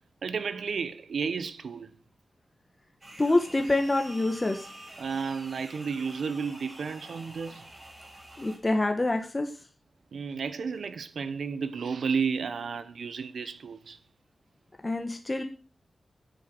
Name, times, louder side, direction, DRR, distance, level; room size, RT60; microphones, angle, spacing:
voice 1, 0.2-1.9 5.0-7.7 10.1-14.0, right 5 dB, 80° right, 1.0 m, -32 dB
sound 1, 3.0-8.6, right 1 dB, 35° right, 5.7 m, -47 dB
voice 2, 3.2-4.7 8.4-9.5 14.8-15.4, left 2 dB, 25° left, 1.5 m, -26 dB
9.8 x 8.3 x 6.2 m
wide cardioid pair, 95°, 0 cm